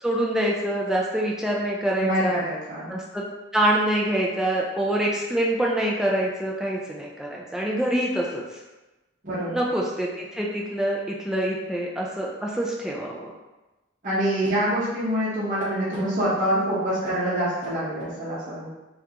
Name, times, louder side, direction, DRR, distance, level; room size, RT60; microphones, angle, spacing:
voice 1, 0.0-2.4 2.9-3.2 3.5-8.4 9.5-13.3, right 1 dB, 5° right, -3 dB, 0.3 m, -25 dB
voice 2, 2.0-2.9 9.2-9.6 14.0-18.7, equal, 45° right, -10 dB, 0.9 m, -25 dB
3.6 x 2.4 x 2.8 m, 1.1 s
head